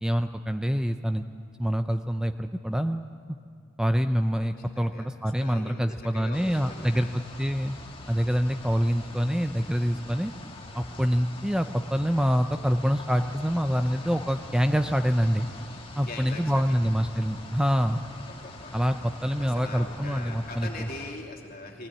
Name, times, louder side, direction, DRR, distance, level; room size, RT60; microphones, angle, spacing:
voice 1, 0.0-1.3 1.6-3.1 3.8-7.8 8.1-10.3 10.7-15.5 16.0-18.0 18.7-20.9, equal, 5° right, 7 dB, 0.5 m, -26 dB
voice 2, 4.6-5.1 5.4-7.2 16.0-17.0 18.3-18.8 19.4-21.9, left 2 dB, 50° left, 0 dB, 3.0 m, -42 dB
sound 1, 6.3-21.1, left 2 dB, 30° left, 1.9 m, -44 dB
21.0 x 17.0 x 9.8 m, 2.4 s
head